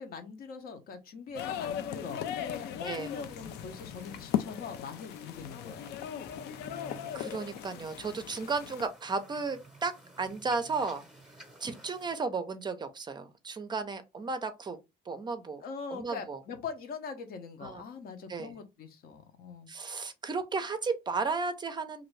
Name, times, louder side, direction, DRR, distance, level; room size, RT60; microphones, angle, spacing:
voice 1, 0.0-5.9 15.6-19.7, left 5 dB, 60° left, 0.8 m, -42 dB
sound 1, 1.3-8.9, left 10 dB, 80° left, 0.4 m, -38 dB
sound 2, 3.0-12.2, right 2 dB, 5° right, 0.8 m, -54 dB
voice 2, 7.1-11.1 11.6-14.8 15.1-15.6 15.9-16.4 17.6-17.8 18.3-18.5 19.7-22.1, right 4 dB, 25° right, 0.5 m, -34 dB
2.6 x 2.5 x 3.1 m
cardioid pair, 110°, 17 cm